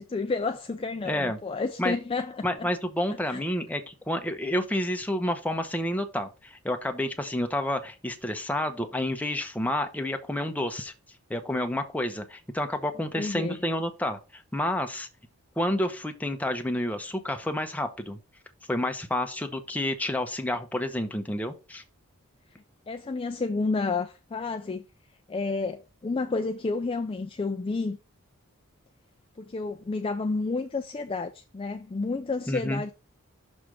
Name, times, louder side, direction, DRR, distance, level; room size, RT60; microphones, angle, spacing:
voice 1, 0.0-2.7 3.1-3.4 13.1-13.6 22.9-24.8 25.3-28.0 29.4-32.9, left 3 dB, 25° left, 0.3 m, -30 dB
voice 2, 1.0-1.4 1.8-1.9 2.4-10.9 11.3-15.1 15.6-18.2 18.7-21.8 32.5-32.8, left 1 dB, 5° left, 0.8 m, -29 dB
6.3 x 3.4 x 6.0 m
head